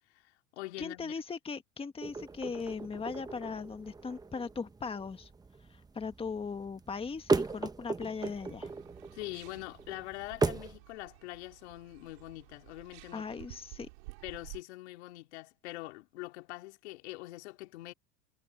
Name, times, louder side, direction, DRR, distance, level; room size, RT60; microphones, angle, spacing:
voice 1, 0.0-1.1 9.1-13.5 14.2-17.9, left 19 dB, 80° left, 2.9 m, -44 dB
voice 2, 0.8-5.3 5.7-8.7 13.1-13.9, left 5 dB, 15° left, 1.6 m, -39 dB
sound 1, 2.0-10.8, right 4 dB, 10° right, 0.9 m, -37 dB
sound 2, 8.1-14.6, right 24 dB, 80° right, 3.9 m, -53 dB
supercardioid pair, 115°, 33 cm